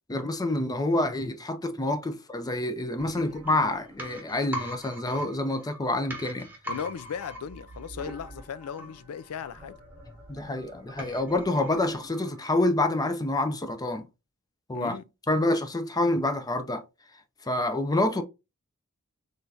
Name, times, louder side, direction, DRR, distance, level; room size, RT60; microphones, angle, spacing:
voice 1, 0.1-6.5 10.3-14.1 14.7-15.0 15.3-16.8 17.4-18.2, left 2 dB, 15° left, 0.5 m, -27 dB
sound 1, 3.0-12.7 13.0-13.1, equal, 10° right, 1.2 m, -42 dB
voice 2, 6.7-9.8 14.7-15.0, left 7 dB, 75° left, 0.4 m, -37 dB
4.4 x 3.2 x 2.7 m
head